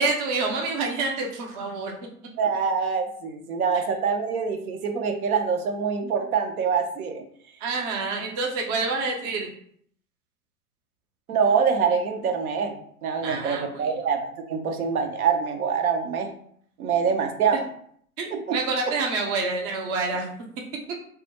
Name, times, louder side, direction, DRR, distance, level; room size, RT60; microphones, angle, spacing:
voice 1, 0.0-1.9 7.6-9.5 13.2-13.9 18.2-20.3, right 3 dB, 30° right, 0 dB, 0.4 m, -27 dB
voice 2, 2.3-7.2 11.3-16.3 16.8-17.6 18.3-18.6, right 6 dB, 75° right, 4 dB, 0.6 m, -25 dB
2.3 x 2.0 x 2.8 m, 0.62 s
hypercardioid pair, 110°, 44 cm